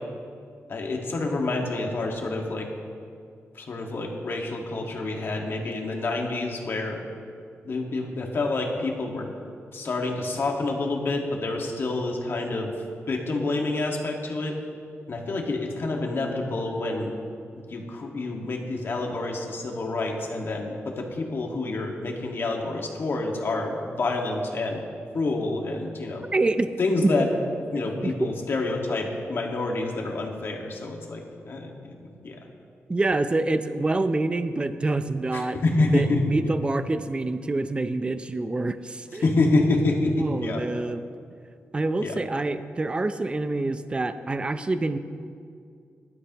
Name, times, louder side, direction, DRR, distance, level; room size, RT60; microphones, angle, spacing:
voice 1, 0.7-2.7 3.6-7.0 7.6-9.3 9.7-12.7 13.1-14.6 15.1-17.1 17.6-24.9 25.1-26.3 26.8-27.3 27.7-32.4 35.3-36.2 39.2-40.6 42.0-42.2, left 2 dB, 55° left, 1 dB, 1.8 m, -27 dB
voice 2, 26.3-26.7 28.0-28.3 32.9-35.6 35.9-39.3 40.2-41.1 41.7-45.0, right 2 dB, 20° right, 10 dB, 0.5 m, -26 dB
19.5 x 12.0 x 3.0 m, 2.3 s
wide cardioid pair, 125°, 5 cm